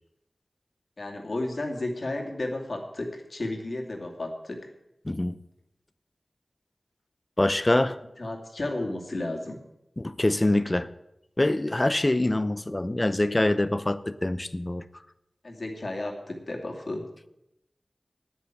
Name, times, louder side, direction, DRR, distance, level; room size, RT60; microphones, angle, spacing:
voice 1, 1.0-4.7 8.2-9.6 15.4-17.1, left 2 dB, 65° left, 2.4 m, -33 dB
voice 2, 5.0-5.4 7.4-8.0 10.0-10.9 11.4-14.9, left 1 dB, 30° left, 0.7 m, -24 dB
9.7 x 9.4 x 9.0 m
wide cardioid pair, 65°, 0 cm